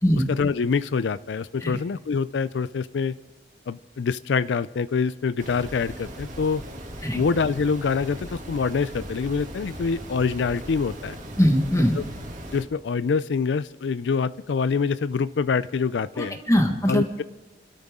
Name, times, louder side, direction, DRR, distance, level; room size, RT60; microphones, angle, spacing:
voice 1, 0.2-3.2 3.7-6.6 7.1-11.2 11.9-12.0 12.5-16.4 16.9-17.2, left 5 dB, 75° left, 16 dB, 0.4 m, -25 dB
sound 1, 5.4-12.6, right 1 dB, 45° right, 2.5 m, -39 dB
voice 2, 11.4-12.0 16.2-17.0, equal, 15° left, 4 dB, 1.4 m, -21 dB
28.5 x 13.0 x 3.7 m, 1.2 s
head